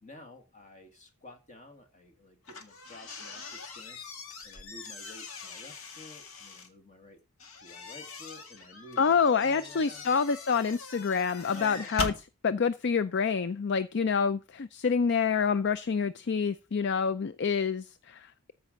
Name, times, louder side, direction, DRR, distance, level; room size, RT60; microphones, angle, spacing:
voice 1, 0.0-4.1 4.4-7.2 7.6-10.1 11.5-11.9, left 2 dB, 35° left, 2.0 m, -51 dB
sound 1, 2.4-6.7 7.4-12.2, left 3 dB, 65° left, 1.8 m, -41 dB
voice 2, 9.0-12.1 12.4-18.5, left 6 dB, 50° left, 0.4 m, -27 dB
14.0 x 5.4 x 5.1 m
head